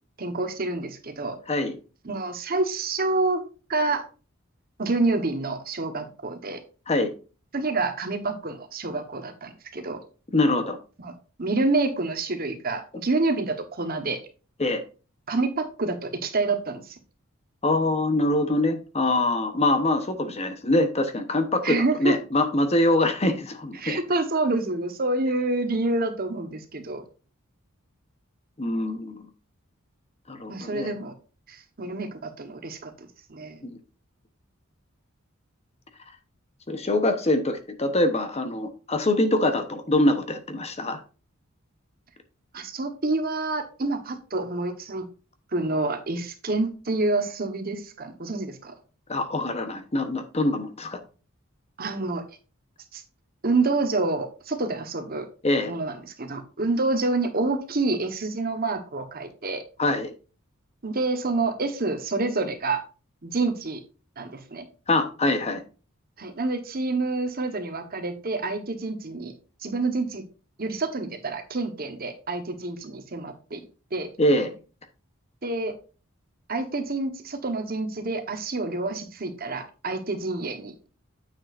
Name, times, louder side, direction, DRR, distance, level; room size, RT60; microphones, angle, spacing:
voice 1, 0.2-1.4 2.0-3.4 3.7-4.0 4.8-6.6 7.5-10.0 11.0-11.1 11.4-14.2 15.3-17.0 21.6-22.1 23.8-27.0 30.5-31.1 31.5-33.6 42.5-45.1 45.5-48.7 51.8-52.2 52.9-53.0 53.4-55.3 55.7-59.6 60.8-62.8 63.2-63.8 64.2-64.6 66.2-69.3 69.6-70.2 70.6-73.6 73.9-74.1 75.4-75.7 76.5-80.9, right 3 dB, 45° right, 7 dB, 1.2 m, -28 dB
voice 2, 10.3-10.8 14.6-14.8 17.6-24.0 28.6-29.2 30.3-30.9 33.6-33.7 36.7-41.0 49.1-51.0 55.4-55.7 59.8-60.1 64.9-65.6 74.2-74.5, left 1 dB, 30° left, 8 dB, 1.0 m, -24 dB
9.3 x 7.3 x 2.6 m, 0.34 s
head